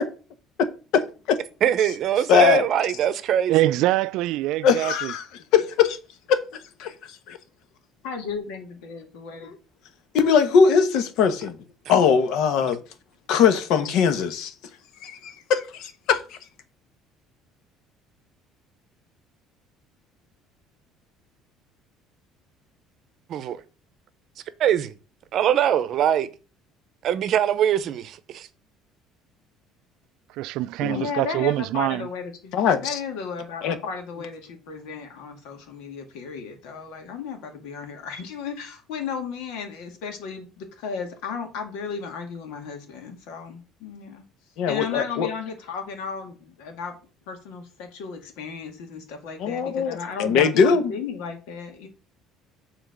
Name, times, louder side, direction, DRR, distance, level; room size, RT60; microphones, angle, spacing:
voice 1, 1.6-3.6 23.3-23.6 24.6-24.9 25.3-26.3 27.0-28.5, right 10 dB, 45° right, 0.7 m, -22 dB
voice 2, 2.3-2.6 4.6-5.2 5.5-6.0 6.3-7.4 9.4-9.5 10.1-11.6 11.9-12.8 13.3-14.5 15.0-16.4 30.8-31.0 32.5-33.0 33.6-33.8 44.6-45.3 49.4-50.9, left 6 dB, 65° left, 1.1 m, -21 dB
voice 3, 3.5-5.1 30.4-32.1, right 16 dB, 70° right, 0.3 m, -24 dB
voice 4, 8.0-9.5 30.9-44.2 44.7-47.0 47.3-51.9, left 5 dB, 85° left, 2.1 m, -35 dB
7.1 x 3.9 x 6.5 m
cardioid pair, 150°, 0 cm